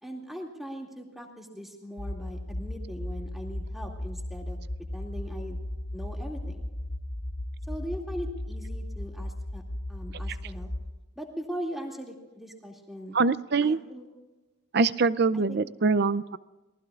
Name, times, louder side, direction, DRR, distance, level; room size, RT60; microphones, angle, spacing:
voice 1, 0.0-4.6 4.9-5.6 5.9-6.7 7.7-9.6 9.9-10.7 11.2-13.2 13.6-14.1 15.3-15.6, equal, ahead, 0 dB, 2.4 m, -40 dB
sound 1, 2.0-10.8, left 1 dB, 45° left, 1.1 m, -36 dB
voice 2, 13.1-13.8 14.7-16.4, right 4 dB, 50° right, 16 dB, 0.5 m, -24 dB
26.5 x 19.0 x 2.4 m, 1.1 s
head